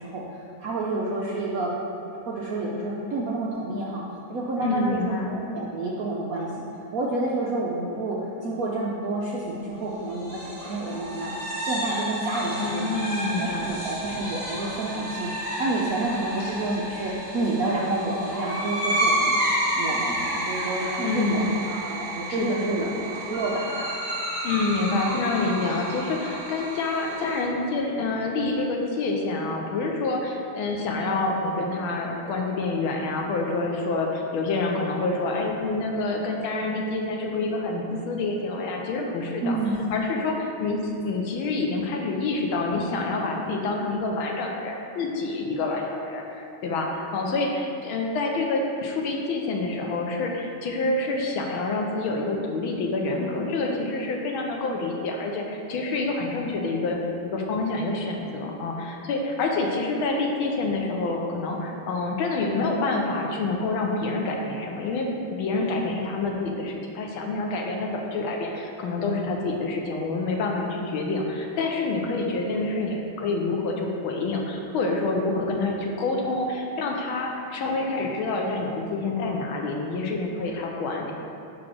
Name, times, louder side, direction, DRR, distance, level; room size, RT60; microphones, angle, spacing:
voice 1, 0.0-1.7 2.3-4.0 4.3-6.6 6.9-11.4 11.7-13.0 13.4-19.4 19.8-22.9 23.2-23.9 39.4-39.8, right 2 dB, 70° right, -4 dB, 0.8 m, -29 dB
voice 2, 4.6-5.4 12.6-13.7 21.0-21.5 22.3-23.0 24.4-39.6 39.9-81.1, left 3 dB, 80° left, 1 dB, 1.6 m, -27 dB
sound 1, 10.1-27.4, right 1 dB, 40° left, 2.3 m, -30 dB
5.8 x 5.0 x 6.1 m, 2.7 s
omnidirectional pair, 2.3 m